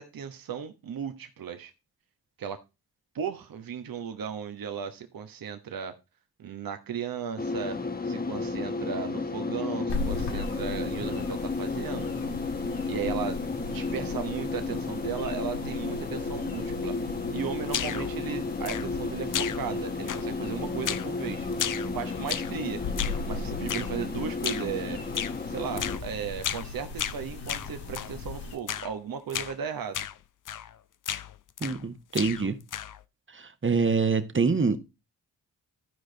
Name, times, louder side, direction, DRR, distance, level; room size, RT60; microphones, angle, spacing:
voice 1, 0.0-1.7 2.4-2.6 3.1-6.0 6.4-7.8 8.0-12.1 12.9-17.0 17.3-21.5 21.9-22.8 23.3-25.0 25.5-30.1, right 7 dB, 60° right, 1.2 m, -36 dB
sound 1, 7.4-26.0, left 3 dB, 25° left, 1.1 m, -33 dB
sound 2, 9.9-28.5, left 4 dB, 90° left, 1.9 m, -38 dB
sound 3, 17.7-18.1 18.6-19.1 19.3-19.8 20.1-20.5 20.8-21.1 21.5-22.6 23.0-23.2 23.7-23.9 24.4-24.7 25.1-25.4 25.8-26.0 26.4-26.7 27.0-28.1 28.7-28.9 29.3-29.6 29.9-30.2 30.5-30.7 31.0-31.9 32.1-33.0, left 10 dB, 55° left, 0.7 m, -34 dB
voice 2, 31.6-32.6 33.3-34.8, right 5 dB, 30° right, 1.2 m, -25 dB
12.5 x 4.9 x 3.9 m
supercardioid pair, 45°, 38 cm